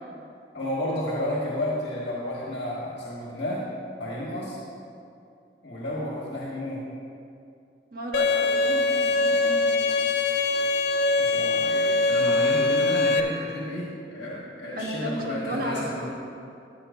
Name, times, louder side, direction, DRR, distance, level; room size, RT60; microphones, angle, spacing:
voice 1, 0.5-3.6 4.0-4.6 5.6-6.8 11.2-16.1, left 1 dB, 85° left, -5 dB, 1.4 m, -32 dB
voice 2, 7.9-9.8 14.8-15.8, equal, 55° right, -1 dB, 1.2 m, -33 dB
Bowed string instrument, 8.1-13.2, left 3 dB, 65° left, 0.5 m, -23 dB
14.5 x 7.5 x 2.7 m, 2.5 s
head